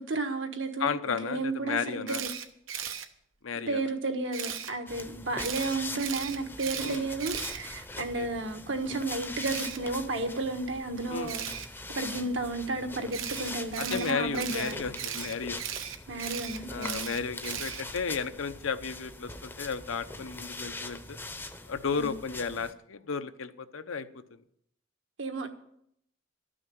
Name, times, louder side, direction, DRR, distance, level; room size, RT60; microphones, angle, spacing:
voice 1, 0.0-2.3 3.7-11.5 11.9-14.8 16.1-17.0 21.9-22.2 25.2-25.5, right 2 dB, 70° right, 6 dB, 1.5 m, -33 dB
voice 2, 0.8-2.2 3.4-3.9 6.8-7.1 7.9-8.3 11.1-11.3 13.8-15.6 16.7-21.2 21.7-24.4, left 5 dB, 90° left, 10 dB, 0.8 m, -34 dB
Camera, 2.1-3.0 4.3-4.7 5.4-8.1 9.4-9.8 11.3-11.7 13.1-18.1, right 9 dB, 90° right, 1.1 m, -37 dB
sound 1, 4.9-22.7, left 2 dB, 10° left, 0.7 m, -42 dB
13.0 x 6.3 x 9.2 m, 0.73 s
head